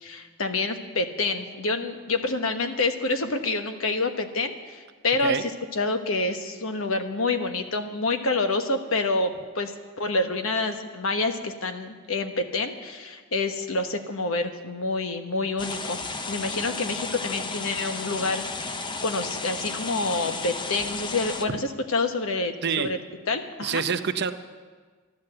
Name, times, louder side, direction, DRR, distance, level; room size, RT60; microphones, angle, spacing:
voice 1, 0.0-9.7 10.0-16.0 16.3-18.7 19.0-23.0 23.3-23.8, left 3 dB, 75° left, 7 dB, 1.1 m, -27 dB
sound 1, 15.6-21.4, left 3 dB, 20° left, 0.6 m, -33 dB
voice 2, 23.6-24.3, right 6 dB, 50° right, 9 dB, 0.7 m, -26 dB
12.5 x 11.5 x 7.7 m, 1.5 s
head